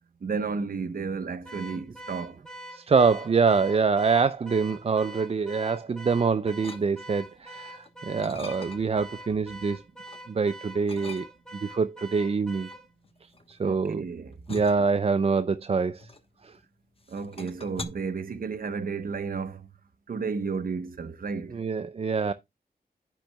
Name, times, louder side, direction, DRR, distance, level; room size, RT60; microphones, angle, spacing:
voice 1, 0.2-2.4 13.6-14.4 17.1-19.7 20.1-21.6, right 5 dB, 60° right, 1.0 m, -32 dB
Car / Alarm, 1.4-12.9, right 1 dB, 5° left, 2.3 m, -44 dB
voice 2, 2.7-9.8 10.3-11.3 11.6-12.7 13.5-14.0 14.5-16.1 16.4-16.5 21.5-22.3, right 5 dB, 35° right, 0.5 m, -25 dB
sound 1, 6.6-7.3 7.7-9.1 9.5-10.3 10.9-11.7 12.5-16.7 17.0-17.8, left 3 dB, 35° left, 1.1 m, -43 dB
9.9 x 9.0 x 2.2 m
wide cardioid pair, 95°, 17 cm